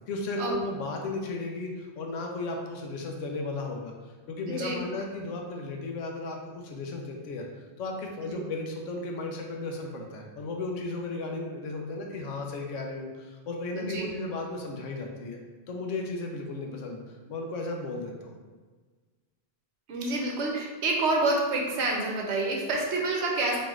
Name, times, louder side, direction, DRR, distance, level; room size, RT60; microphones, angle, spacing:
voice 1, 0.1-7.5 7.8-15.4 15.7-18.3, left 2 dB, 80° left, 1 dB, 1.0 m, -35 dB
voice 2, 4.5-4.8 8.3-8.4 13.7-14.1 19.9-23.6, right 2 dB, 70° right, -1 dB, 0.9 m, -28 dB
3.1 x 3.0 x 3.5 m, 1.4 s
omnidirectional pair, 1.3 m